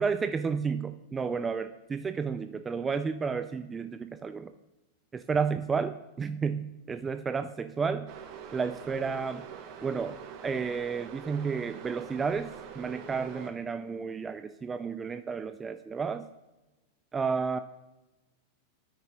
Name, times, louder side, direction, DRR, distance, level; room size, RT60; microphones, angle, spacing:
voice 1, 0.0-4.5 5.1-8.1 8.5-9.5 9.8-10.2 10.4-16.3 17.1-17.6, right 5 dB, 15° right, 10 dB, 0.3 m, -32 dB
sound 1, 8.1-13.5, right 7 dB, 40° right, 1.0 m, -44 dB
13.0 x 6.6 x 2.9 m, 1.0 s
figure-of-eight pair, 90°, 0 cm